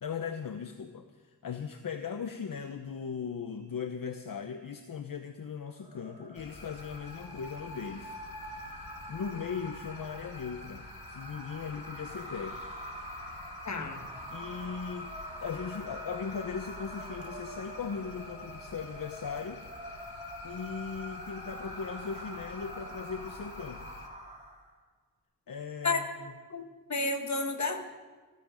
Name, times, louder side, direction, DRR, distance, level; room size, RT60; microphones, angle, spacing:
voice 1, 0.0-8.2 8.5-12.6 14.3-19.6 20.4-23.9 25.5-26.3, left 6 dB, 70° left, 7 dB, 0.8 m, -38 dB
sound 1, 5.8-24.7, equal, 20° right, 3.9 m, -45 dB
sound 2, 6.3-24.1, left 4 dB, 85° left, 1.4 m, -50 dB
voice 2, 13.6-14.0 25.8-26.0 26.5-26.6 26.9-27.8, left 3 dB, 50° left, 6 dB, 1.6 m, -30 dB
15.0 x 13.5 x 5.2 m, 1.4 s
wide cardioid pair, 60°, 35 cm